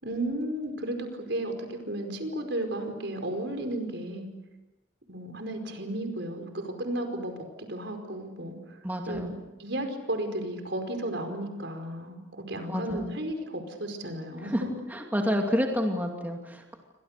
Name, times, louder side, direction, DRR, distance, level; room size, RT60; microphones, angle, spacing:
voice 1, 0.0-4.3 5.1-8.8 9.1-9.3 9.6-14.7, right 1 dB, 65° right, 5 dB, 4.9 m, -34 dB
voice 2, 8.8-9.3 12.7-13.1 14.4-14.6 14.9-16.8, equal, 10° right, 1 dB, 2.5 m, -29 dB
30.0 x 25.0 x 6.7 m, 1.1 s
head